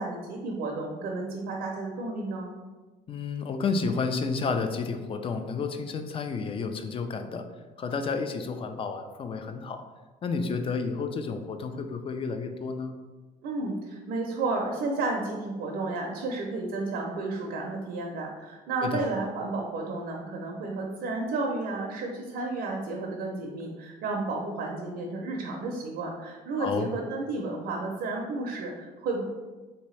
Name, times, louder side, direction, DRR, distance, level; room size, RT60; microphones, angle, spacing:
voice 1, 0.0-2.5 13.4-29.2, right 3 dB, 75° right, 0 dB, 0.5 m, -32 dB
voice 2, 3.1-7.4 7.8-9.8 10.2-12.9 18.8-19.0 26.6-26.9, left 4 dB, 35° left, 7 dB, 0.3 m, -31 dB
3.3 x 2.8 x 3.1 m, 1.3 s
cardioid pair, 110°, 17 cm